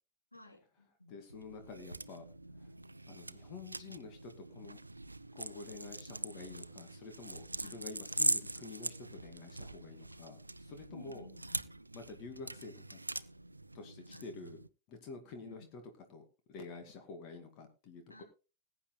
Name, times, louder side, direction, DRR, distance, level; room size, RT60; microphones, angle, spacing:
voice 1, 0.3-1.1 6.1-6.5 7.6-7.8 10.9-11.7 14.1-14.2 15.5-15.7 18.1-18.2, left 1 dB, 85° left, 1 dB, 3.3 m, -54 dB
voice 2, 1.1-2.2 2.6-2.7 3.1-4.8 5.3-11.3 11.9-13.0 13.7-14.6 14.9-15.8 16.1-18.2, left 4 dB, 40° left, 5 dB, 2.2 m, -49 dB
sound 1, 1.3-14.7, right 2 dB, 85° right, 0.5 m, -42 dB
21.0 x 9.0 x 2.2 m, 0.31 s
figure-of-eight pair, 90°, 0 cm